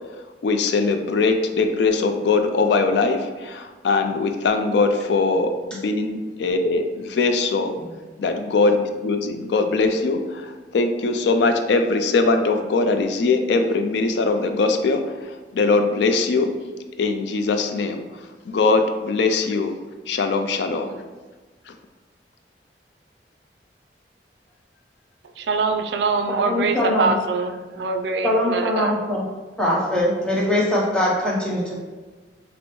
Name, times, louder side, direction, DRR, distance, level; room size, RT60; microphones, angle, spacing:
voice 1, 0.4-7.7 8.2-15.0 15.5-16.5 17.0-18.0 18.5-19.7 20.1-20.9, left 3 dB, 75° left, 6 dB, 0.4 m, -21 dB
voice 2, 25.4-29.0, right 4 dB, 75° right, 6 dB, 0.4 m, -24 dB
voice 3, 26.3-27.1 28.2-29.2 29.6-31.8, left 1 dB, 5° left, -5 dB, 0.8 m, -22 dB
6.1 x 2.0 x 3.0 m, 1.3 s
head